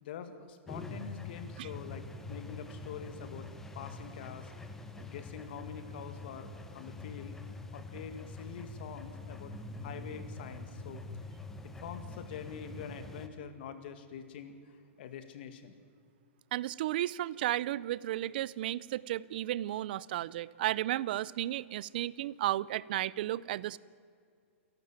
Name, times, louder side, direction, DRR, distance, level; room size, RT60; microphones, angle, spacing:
voice 1, 0.0-3.5 3.7-4.5 4.9-7.4 7.7-11.0 11.6-15.7, left 7 dB, 45° left, 9 dB, 2.1 m, -45 dB
sound 1, 0.7-13.3, left 3 dB, 5° left, 1.0 m, -45 dB
voice 2, 16.5-23.8, right 14 dB, 45° right, 21 dB, 0.5 m, -33 dB
29.0 x 12.0 x 9.0 m, 2.3 s
hypercardioid pair, 165°, 7 cm